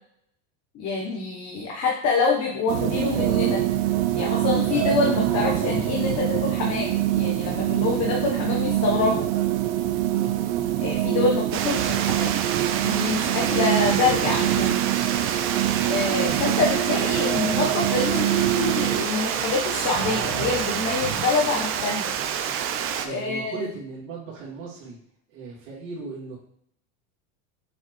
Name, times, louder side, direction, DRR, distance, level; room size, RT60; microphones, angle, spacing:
voice 1, 0.7-3.6 4.1-9.3 10.8-12.4 12.8-14.8 15.9-22.1 23.0-23.7, left 4 dB, 35° left, -2 dB, 1.0 m, -26 dB
sound 1, 2.7-19.1, right 13 dB, 65° right, 0.8 m, -25 dB
voice 2, 10.1-10.4 11.1-11.3 23.0-25.0 25.3-26.4, right 4 dB, 50° right, -5 dB, 2.6 m, -38 dB
Water, 11.5-23.1, right 8 dB, 30° right, 0.5 m, -28 dB
7.1 x 4.5 x 3.1 m, 0.73 s
supercardioid pair, 135°, 44 cm